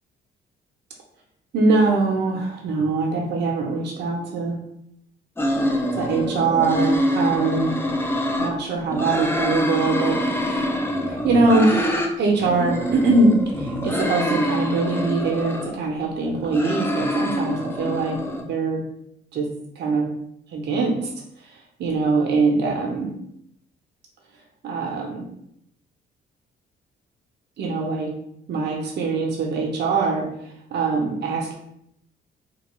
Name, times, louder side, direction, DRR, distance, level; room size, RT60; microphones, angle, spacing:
voice 1, 1.5-4.6 5.9-7.7 8.4-10.6 11.1-18.2 18.5-18.8 19.3-19.5 19.8-20.1 20.5-21.1 21.4-23.1 24.6-25.3 27.6-28.1 28.5-31.5, right 3 dB, 60° right, 0 dB, 0.6 m, -23 dB
sound 1, 5.4-8.5 8.9-12.1 12.4-15.7 16.2-18.4, equal, 10° left, 0.3 m, -25 dB
2.3 x 2.2 x 2.9 m, 0.75 s
cardioid pair, 90°, 20 cm